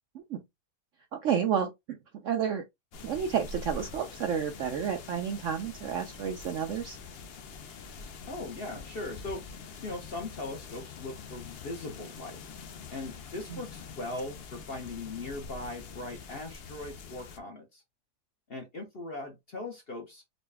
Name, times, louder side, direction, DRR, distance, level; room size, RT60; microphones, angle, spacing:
voice 1, 1.1-2.0 2.2-2.6 3.0-7.0 13.5-13.6, right 8 dB, 70° right, 0.7 m, -31 dB
sound 1, 2.9-17.4, left 5 dB, 80° left, 0.5 m, -45 dB
voice 2, 8.3-12.4 12.9-17.8 18.5-20.2, left 2 dB, 50° left, 0.8 m, -40 dB
4.0 x 2.2 x 3.3 m
omnidirectional pair, 1.8 m